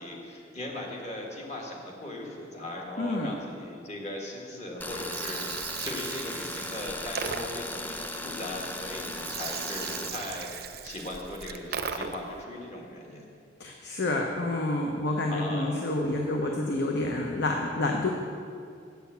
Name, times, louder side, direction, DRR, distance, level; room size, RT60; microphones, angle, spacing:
voice 1, 0.0-10.5 10.8-13.3 15.3-15.8, left 1 dB, 40° left, -1 dB, 1.7 m, -38 dB
voice 2, 3.0-3.3 13.6-18.1, left 2 dB, 65° left, 1 dB, 0.8 m, -28 dB
Tools, 4.8-10.1, left 2 dB, 10° left, 0.5 m, -37 dB
Gurgling, 4.9-12.4, right 7 dB, 55° right, 0.5 m, -38 dB
7.9 x 7.0 x 8.1 m, 2.4 s
head